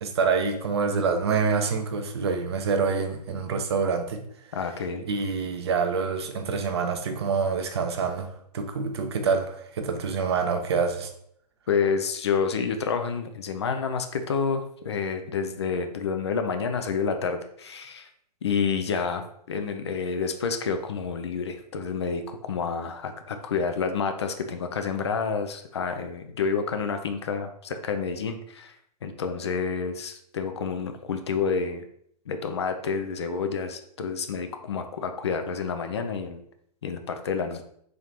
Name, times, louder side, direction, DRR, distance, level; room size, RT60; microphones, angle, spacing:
voice 1, 0.0-4.2 5.0-11.1, right 5 dB, 40° right, 6 dB, 0.5 m, -26 dB
voice 2, 4.5-5.1 11.7-18.1 18.4-28.7 29.0-31.9 32.3-36.4 36.8-37.6, left 5 dB, 40° left, 7 dB, 0.4 m, -29 dB
3.8 x 3.1 x 2.8 m, 0.69 s
figure-of-eight pair, 125°, 21 cm